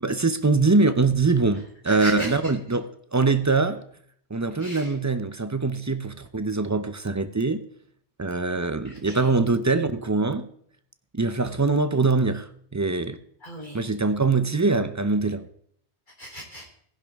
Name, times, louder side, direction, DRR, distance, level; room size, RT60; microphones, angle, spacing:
voice 1, 0.0-3.8 4.3-7.6 8.2-10.5 11.1-13.2 13.7-15.5, right 3 dB, 20° right, 0.5 m, -23 dB
voice 2, 1.9-2.4 4.6-4.9 8.8-9.4 13.4-13.8 16.2-16.7, equal, 45° left, 4.0 m, -37 dB
18.5 x 10.5 x 3.6 m
omnidirectional pair, 1.1 m